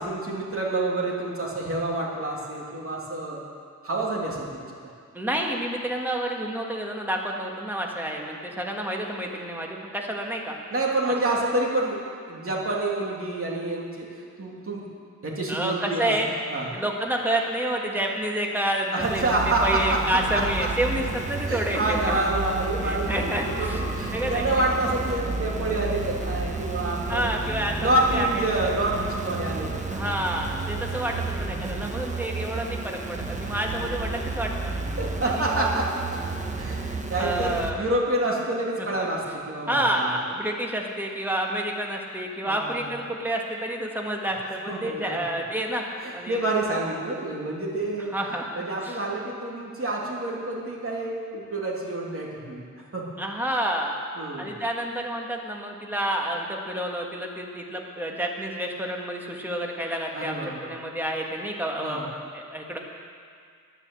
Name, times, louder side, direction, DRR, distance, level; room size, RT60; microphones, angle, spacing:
voice 1, 0.0-3.4 3.8-4.7 10.7-12.0 12.3-14.1 14.4-14.8 15.2-16.1 16.5-16.7 18.9-20.0 20.3-20.7 21.5-27.3 27.8-30.1 33.5-33.6 35.0-36.2 36.6-40.2 42.4-42.9 44.7-45.2 46.0-48.2 48.5-52.6 52.9-53.0 54.2-54.6 60.1-60.8 61.8-62.1, right 2 dB, 45° right, -3 dB, 2.7 m, -28 dB
voice 2, 5.1-10.6 15.5-16.3 16.7-22.2 22.8-23.8 24.1-24.5 27.1-28.5 29.9-34.7 35.2-35.8 37.2-37.8 38.8-39.1 39.7-45.8 46.1-46.4 48.1-49.0 53.2-54.0 54.4-62.8, right 1 dB, 5° right, 0 dB, 1.6 m, -29 dB
sound 1, 19.0-37.7, right 3 dB, 20° right, 1.2 m, -31 dB
sound 2, 22.2-26.1, left 2 dB, 40° left, 2.7 m, -41 dB
11.0 x 10.0 x 7.7 m, 2.1 s
wide cardioid pair, 110°, 32 cm